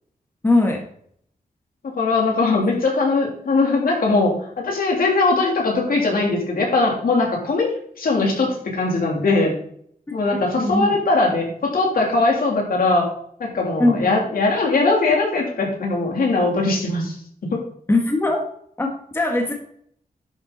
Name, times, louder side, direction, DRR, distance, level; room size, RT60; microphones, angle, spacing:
voice 1, 0.4-0.8 2.6-2.7 10.3-10.9 13.8-14.1 17.9-18.4 18.8-19.5, left 2 dB, 15° left, 1 dB, 1.6 m, -20 dB
voice 2, 1.8-4.4 4.6-7.7 8.0-9.5 10.1-13.1 13.4-17.1 17.4-17.6, left 3 dB, 75° left, -1 dB, 3.3 m, -20 dB
11.0 x 7.3 x 4.1 m, 0.64 s
wide cardioid pair, 160°, 15 cm